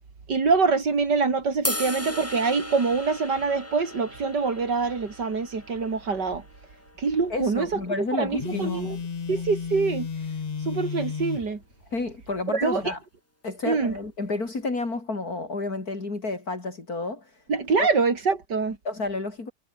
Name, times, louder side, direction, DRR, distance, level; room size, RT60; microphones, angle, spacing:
voice 1, 0.3-6.4 7.0-9.0 9.3-10.1 10.7-11.6 12.5-12.9 13.6-13.9 17.5-18.8, right 4 dB, 80° right, 3.7 m, -25 dB
sound 1, 1.6-7.9, left 1 dB, 10° left, 2.6 m, -37 dB
voice 2, 7.3-8.9 11.9-13.0 13.4-17.3 17.8-17.9 18.8-19.5, left 3 dB, 60° left, 4.4 m, -30 dB
Telephone, 8.4-11.5, left 6 dB, 40° left, 0.6 m, -32 dB
omnidirectional pair, 1.8 m